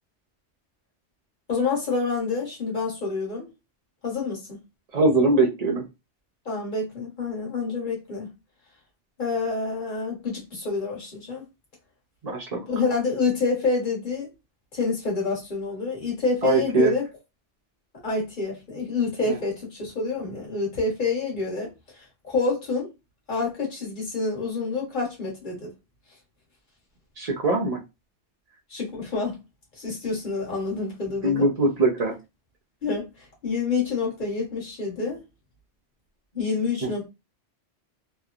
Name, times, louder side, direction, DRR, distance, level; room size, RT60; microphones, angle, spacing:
voice 1, 1.5-3.5 4.0-4.6 6.4-8.3 9.2-11.4 12.7-14.3 14.7-17.1 18.0-22.9 23.3-25.7 28.7-29.4 29.7-31.5 32.8-35.2 36.3-37.1, left 4 dB, 45° left, 1.3 m, -27 dB
voice 2, 4.9-5.8 12.2-12.6 16.4-16.9 27.2-27.8 31.2-32.1, right 2 dB, 50° right, 0.5 m, -21 dB
3.0 x 2.1 x 2.4 m
omnidirectional pair, 1.2 m